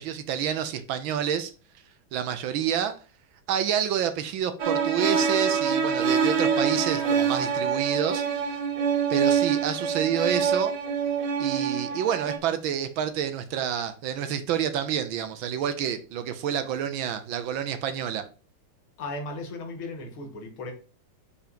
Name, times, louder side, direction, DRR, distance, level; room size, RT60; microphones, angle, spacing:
voice 1, 0.0-1.5 2.1-3.0 3.5-8.6 9.1-10.7 11.4-18.2, right 9 dB, 75° right, 1.4 m, -28 dB
sound 1, 4.6-12.4, right 6 dB, 55° right, 1.6 m, -25 dB
voice 2, 19.0-20.7, left 2 dB, 70° left, 2.3 m, -36 dB
5.1 x 4.9 x 5.1 m
omnidirectional pair, 2.4 m